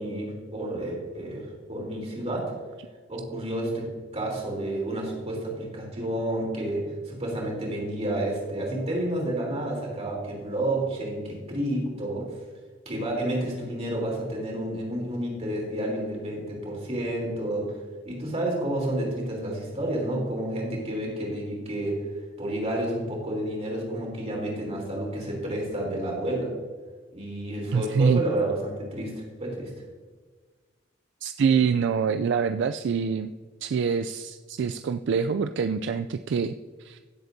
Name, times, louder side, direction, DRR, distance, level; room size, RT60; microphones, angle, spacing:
voice 1, 0.0-2.5 3.1-3.9 4.1-12.3 12.9-17.8 18.1-22.0 22.4-26.5 27.1-29.7, right 1 dB, 35° right, -2 dB, 3.4 m, -30 dB
voice 2, 27.7-28.2 31.2-33.3 33.6-36.5 36.8-37.0, right 6 dB, 65° right, 9 dB, 0.3 m, -25 dB
16.5 x 7.8 x 2.7 m, 1.4 s
head